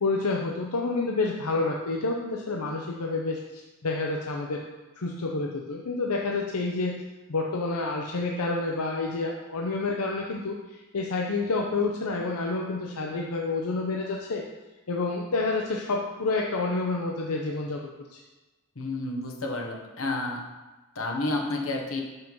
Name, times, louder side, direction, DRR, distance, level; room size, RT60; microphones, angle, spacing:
voice 1, 0.0-4.6 5.0-14.4 14.9-18.2, left 3 dB, 85° left, 0 dB, 0.7 m, -29 dB
voice 2, 18.7-20.4 20.9-22.0, left 2 dB, 65° left, 1 dB, 1.2 m, -30 dB
5.9 x 5.5 x 5.4 m, 1.1 s
head